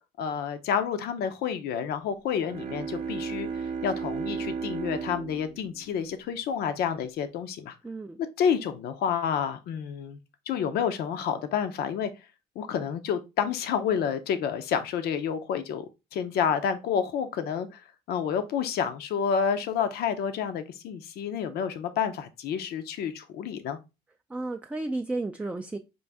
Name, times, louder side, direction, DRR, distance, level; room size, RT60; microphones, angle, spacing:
voice 1, 0.2-7.8 8.4-10.2 10.5-12.1 12.6-17.8 18.1-23.8, left 7 dB, 70° left, 0.6 m, -29 dB
Bowed string instrument, 2.3-6.9, right 5 dB, 35° right, 0.7 m, -35 dB
voice 2, 7.8-8.2 24.3-25.8, right 2 dB, 5° right, 0.3 m, -32 dB
5.3 x 2.5 x 3.4 m
cardioid pair, 110°, 17 cm